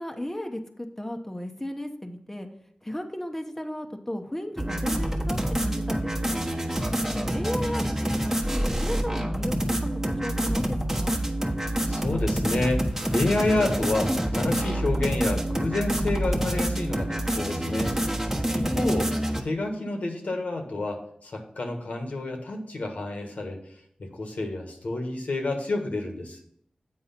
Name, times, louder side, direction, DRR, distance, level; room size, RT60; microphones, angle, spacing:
voice 1, 0.0-2.5 2.8-6.4 7.1-7.8 8.1-9.5 9.8-11.2 18.6-19.1, left 1 dB, 15° left, 4 dB, 0.9 m, -34 dB
sound 1, 4.6-19.4, right 1 dB, 15° right, 1.2 m, -27 dB
voice 2, 11.8-17.9 18.5-19.1 19.4-23.6 24.0-26.4, left 2 dB, 80° left, 3 dB, 1.5 m, -29 dB
8.2 x 4.7 x 5.8 m, 0.69 s
wide cardioid pair, 65°, 2 cm